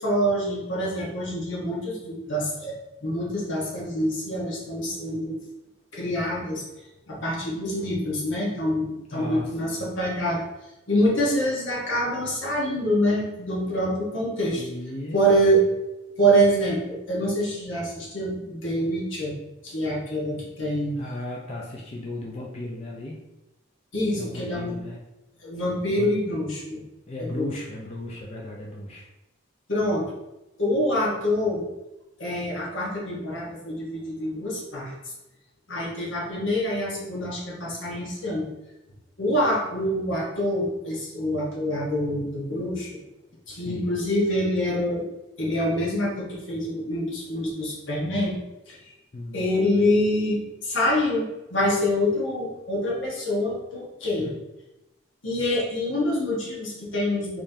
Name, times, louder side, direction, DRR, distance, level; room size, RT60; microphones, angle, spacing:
voice 1, 0.0-5.4 5.9-6.6 7.1-10.4 10.9-14.6 15.1-15.6 16.2-19.3 19.6-21.0 23.9-24.8 25.4-26.8 27.3-27.5 29.7-30.0 30.6-31.6 32.2-34.9 35.7-38.5 39.2-42.9 43.5-45.1 45.4-48.4 48.7-48.9 49.3-54.3 55.2-57.4, equal, 80° left, -4 dB, 1.2 m, -26 dB
voice 2, 9.1-9.8 14.5-15.5 21.0-23.2 24.1-25.0 25.9-26.1 27.1-29.1 43.5-43.9 49.1-49.6 54.0-54.4, left 1 dB, 30° left, -2 dB, 0.4 m, -36 dB
3.7 x 3.1 x 2.7 m, 0.96 s
head